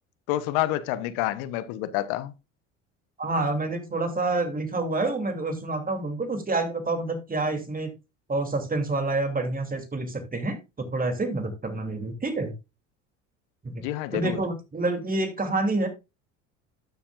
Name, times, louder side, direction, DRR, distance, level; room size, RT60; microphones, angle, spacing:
voice 1, 0.3-2.3 13.8-14.4, left 14 dB, 75° left, 1.1 m, -28 dB
voice 2, 3.2-7.9 8.3-12.5 13.6-13.8 14.1-15.9, right 2 dB, 25° right, 3.0 m, -28 dB
13.0 x 7.1 x 2.5 m
hypercardioid pair, 75°, 36 cm